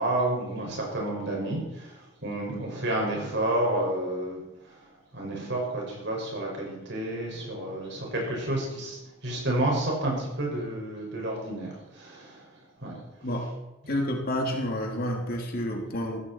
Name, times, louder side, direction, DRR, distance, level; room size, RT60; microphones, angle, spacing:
voice 1, 0.0-4.4 4.7-4.8 5.1-12.4 12.8-13.0, right 1 dB, 60° right, -1 dB, 6.0 m, -30 dB
voice 2, 13.9-16.2, equal, 50° left, 1 dB, 2.8 m, -29 dB
15.5 x 15.0 x 4.5 m, 1.0 s
head